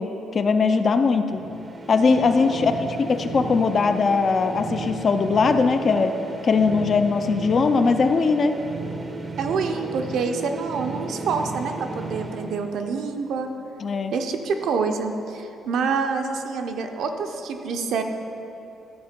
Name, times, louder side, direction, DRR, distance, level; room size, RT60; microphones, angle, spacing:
voice 1, 0.0-1.4 1.9-6.1 6.4-8.6 13.8-14.1, left 4 dB, 30° left, 8 dB, 0.4 m, -20 dB
sound 1, 1.3-13.2, right 3 dB, 20° right, 0.6 m, -34 dB
voice 2, 9.4-13.5 14.1-18.0, right 5 dB, 60° right, 5 dB, 0.6 m, -27 dB
13.5 x 4.6 x 5.1 m, 3.0 s
cardioid pair, 170°, 0 cm